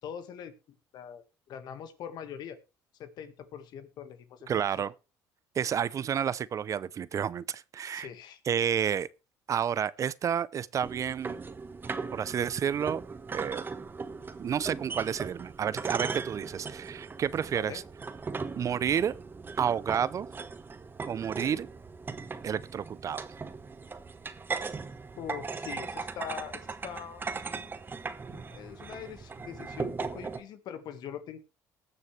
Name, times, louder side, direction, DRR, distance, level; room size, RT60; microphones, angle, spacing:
voice 1, 0.0-0.5 0.9-2.6 3.0-4.5 4.8-4.9 7.9-8.4 17.5-17.8 25.2-27.2 28.3-31.4, left 8 dB, 65° left, 1.6 m, -42 dB
voice 2, 4.5-4.9 5.6-8.1 8.5-9.1 9.5-11.4 12.1-13.0 13.3-13.7 14.4-17.8 18.6-19.2 19.6-20.3 21.1-21.7 22.4-23.2, right 8 dB, 45° right, 0.5 m, -30 dB
sound 1, 10.8-30.4, right 4 dB, 25° right, 1.2 m, -38 dB
20.0 x 6.8 x 3.2 m
supercardioid pair, 85°, 8 cm